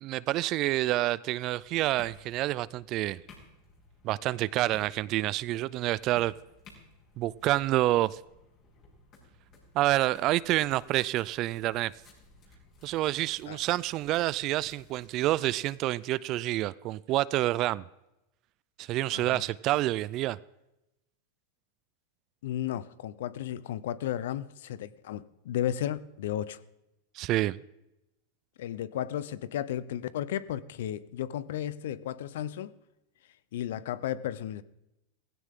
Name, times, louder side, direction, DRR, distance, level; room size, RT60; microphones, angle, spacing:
voice 1, 0.0-3.2 4.0-6.3 7.2-8.2 9.7-11.9 12.8-17.8 18.8-20.4 27.2-27.6, right 16 dB, 45° right, 0.4 m, -28 dB
sound 1, 1.5-15.8, left 3 dB, 40° left, 7.2 m, -57 dB
voice 2, 19.1-19.4 22.4-26.6 28.6-32.7 33.5-34.6, left 11 dB, 75° left, 0.8 m, -34 dB
16.5 x 16.0 x 3.7 m
supercardioid pair, 125°, 0 cm